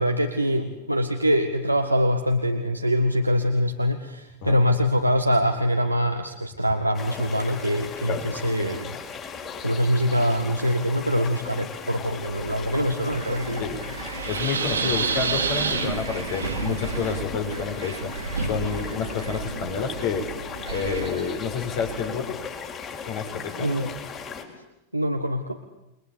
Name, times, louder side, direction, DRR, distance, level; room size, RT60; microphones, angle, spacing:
voice 1, 0.0-9.0 9.6-13.6 23.6-23.9 24.9-25.6, equal, 90° right, 4 dB, 1.7 m, -24 dB
sound 1, 6.9-24.4, left 6 dB, 30° left, 5.3 m, -37 dB
Wind, 12.1-22.2, right 4 dB, 75° right, 2.8 m, -31 dB
voice 2, 14.3-18.1 18.5-20.3 20.7-22.4 23.0-23.8, left 6 dB, 50° left, 5 dB, 4.4 m, -29 dB
29.5 x 22.5 x 8.7 m, 0.92 s
figure-of-eight pair, 90°, 0 cm